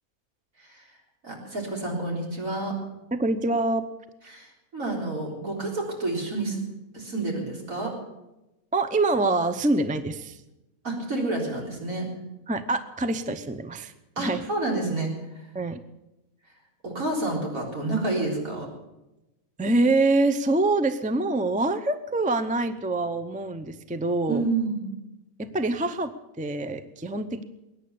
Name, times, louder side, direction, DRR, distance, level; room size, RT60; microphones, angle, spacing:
voice 1, 1.2-2.8 4.3-6.6 6.9-7.9 10.8-12.1 14.2-15.1 16.8-18.7 24.3-24.8, right 2 dB, 70° right, -1 dB, 4.3 m, -29 dB
voice 2, 3.1-3.8 8.7-10.4 12.5-13.9 14.2-14.4 15.5-15.8 19.6-24.4 25.4-26.1 26.4-27.4, right 2 dB, 10° right, 11 dB, 0.5 m, -25 dB
21.0 x 9.8 x 7.0 m, 0.97 s
omnidirectional pair, 1.5 m